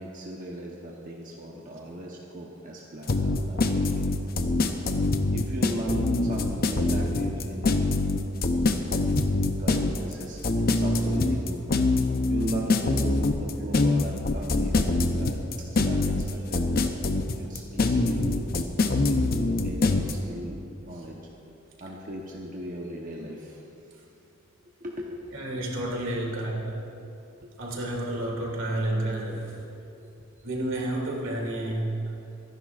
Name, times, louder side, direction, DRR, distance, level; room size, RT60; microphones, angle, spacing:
voice 1, 0.0-4.1 5.3-7.9 9.1-11.7 12.3-15.4 15.8-16.7 17.3-18.4 18.8-21.2 21.8-23.6 24.8-25.2 27.4-27.5 30.0-30.1, right 1 dB, 40° right, -3 dB, 1.0 m, -38 dB
sound 1, 3.1-20.1, left 2 dB, 50° left, 0.7 m, -24 dB
voice 2, 25.3-26.8 27.6-29.6 30.4-32.1, right 1 dB, 75° right, -2 dB, 2.5 m, -31 dB
26.0 x 10.5 x 2.5 m, 2.7 s
head